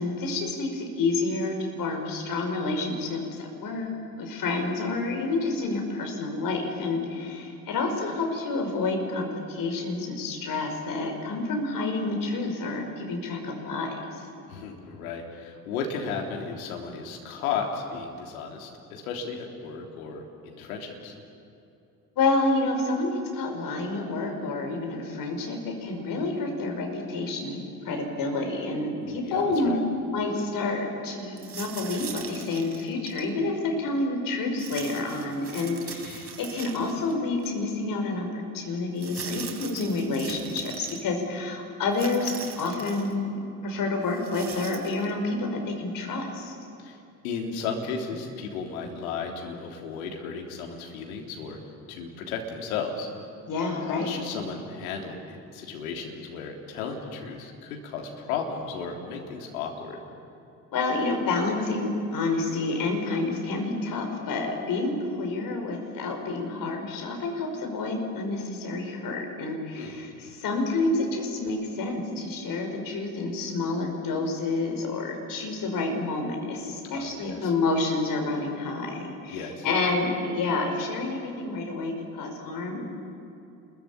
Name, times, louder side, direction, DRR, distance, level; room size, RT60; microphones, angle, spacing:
voice 1, 0.0-14.2 22.2-29.8 30.1-43.3 43.6-46.5 53.5-54.2 60.7-82.8, left 3 dB, 45° left, 3 dB, 5.5 m, -29 dB
voice 2, 14.5-21.1 29.0-29.8 46.8-51.6 51.9-53.1 53.8-60.0 69.7-70.0 76.9-77.5 79.3-79.7, left 5 dB, 65° left, 1 dB, 3.6 m, -34 dB
sound 1, 31.4-33.3 34.6-37.1 37.4-37.5 39.0-41.0 41.9-43.1 44.1-45.1, right 6 dB, 30° right, 3.6 m, -41 dB
29.0 x 22.5 x 8.8 m, 2.8 s
figure-of-eight pair, 55°, 45 cm